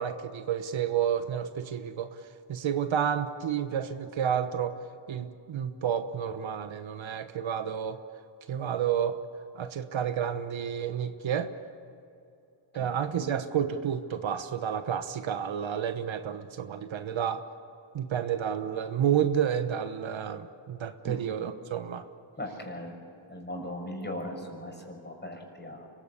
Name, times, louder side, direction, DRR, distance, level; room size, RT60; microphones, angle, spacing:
voice 1, 0.0-2.1 2.5-4.7 5.1-8.0 8.5-9.2 9.5-11.5 12.7-17.4 17.9-22.0, right 8 dB, 70° right, 10 dB, 1.2 m, -30 dB
voice 2, 22.4-22.9 23.3-25.9, left 1 dB, 20° left, 2 dB, 6.2 m, -38 dB
24.5 x 16.5 x 8.4 m, 2.7 s
cardioid pair, 60°, 48 cm